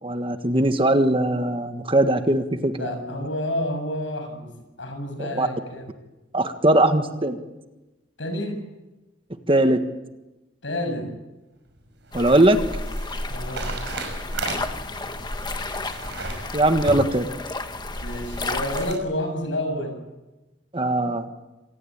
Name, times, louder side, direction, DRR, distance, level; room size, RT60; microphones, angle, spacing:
voice 1, 0.0-3.2 5.2-5.5 6.3-7.4 9.5-9.8 12.1-12.6 16.5-17.3 20.7-21.3, right 1 dB, 30° right, 8 dB, 1.6 m, -20 dB
voice 2, 2.7-4.5 4.8-5.9 8.2-8.6 10.6-11.1 13.3-13.7 18.0-20.0, left 1 dB, 80° left, 5 dB, 7.0 m, -29 dB
sound 1, 11.7-19.0, right 3 dB, 65° right, 5.7 m, -36 dB
sound 2, 12.1-18.9, left 2 dB, 25° left, 1.3 m, -32 dB
26.5 x 19.0 x 8.9 m, 1.0 s
head